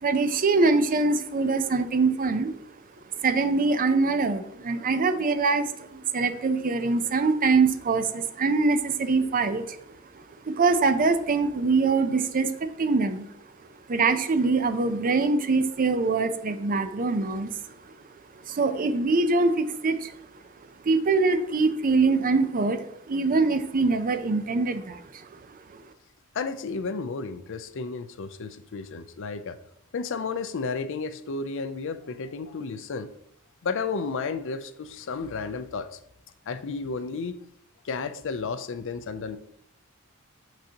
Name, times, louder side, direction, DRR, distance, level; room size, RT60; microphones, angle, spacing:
voice 1, 0.0-2.5 3.2-9.8 10.1-13.3 13.9-17.5 18.4-20.1 20.8-25.3 25.7-25.8, right 3 dB, 40° right, 9 dB, 0.5 m, -24 dB
voice 2, 26.3-29.6 29.9-33.1 33.6-36.0 36.5-37.4 37.8-39.4, left 4 dB, 65° left, 12 dB, 0.5 m, -32 dB
6.4 x 6.0 x 2.8 m, 0.77 s
head